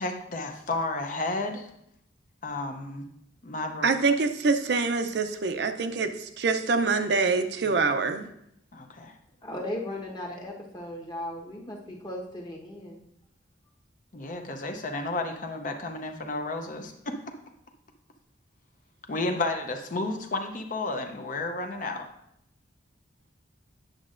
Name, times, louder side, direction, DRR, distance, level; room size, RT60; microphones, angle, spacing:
voice 1, 0.0-1.7 2.4-3.1 3.4-3.9 8.7-9.1 14.1-17.2 19.1-22.0, left 2 dB, 45° left, 5 dB, 0.6 m, -32 dB
voice 2, 3.8-8.3, right 4 dB, 60° right, 7 dB, 0.5 m, -25 dB
voice 3, 9.4-13.0, left 1 dB, 25° left, -1 dB, 1.0 m, -37 dB
8.9 x 6.3 x 2.5 m, 0.76 s
head